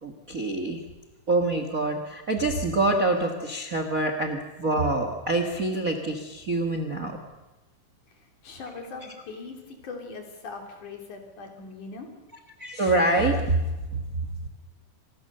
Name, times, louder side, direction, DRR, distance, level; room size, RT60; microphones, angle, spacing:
voice 1, 0.0-0.8 1.3-7.2 12.6-14.3, right 2 dB, 35° right, 6 dB, 1.5 m, -26 dB
voice 2, 8.1-12.1, left 4 dB, 65° left, 3 dB, 4.7 m, -41 dB
27.0 x 19.5 x 6.8 m, 1.1 s
omnidirectional pair, 3.9 m